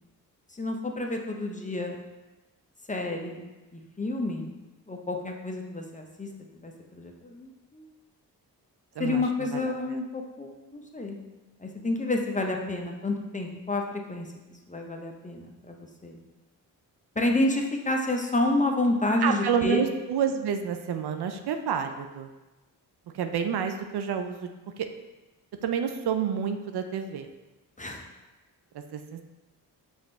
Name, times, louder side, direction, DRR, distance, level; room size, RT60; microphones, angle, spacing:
voice 1, 0.5-2.0 2.9-3.4 3.7-4.5 4.9-6.3 6.6-7.9 9.0-11.2 11.6-14.3 14.7-16.2 17.2-19.8 27.8-28.0, left 2 dB, 20° left, 2 dB, 0.6 m, -29 dB
voice 2, 9.0-9.7 19.2-22.3 23.1-24.5 25.6-27.3 28.7-29.2, right 7 dB, 65° right, 6 dB, 0.5 m, -29 dB
5.0 x 2.6 x 3.3 m, 1.1 s
supercardioid pair, 45°, 43 cm